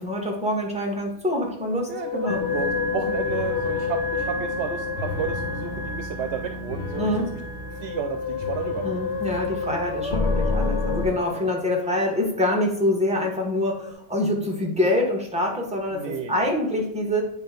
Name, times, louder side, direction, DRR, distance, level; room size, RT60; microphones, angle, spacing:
voice 1, 0.0-2.4 6.9-7.3 8.8-17.2, left 1 dB, 5° right, -2 dB, 1.6 m, -25 dB
Musical instrument, 1.6-6.2 7.5-12.4 13.5-13.9, left 6 dB, 80° left, 1.0 m, -31 dB
voice 2, 1.9-7.4 7.7-8.9 11.3-11.5 15.9-16.4, right 7 dB, 75° right, 7 dB, 0.9 m, -32 dB
sound 1, 2.3-11.1, left 2 dB, 50° left, 1.0 m, -30 dB
9.1 x 3.2 x 5.0 m, 0.78 s
omnidirectional pair, 1.1 m